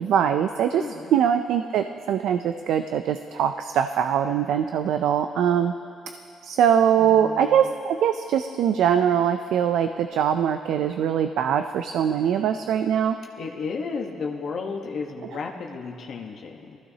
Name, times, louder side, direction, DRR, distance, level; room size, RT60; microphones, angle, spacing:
voice 1, 0.0-0.8 1.1-5.7 6.4-13.2, right 8 dB, 80° right, 8 dB, 0.4 m, -22 dB
voice 2, 0.7-1.2 7.0-7.6 13.4-16.8, left 4 dB, 65° left, 0 dB, 1.1 m, -33 dB
19.5 x 14.5 x 2.8 m, 2.6 s
cardioid pair, 90°, 0 cm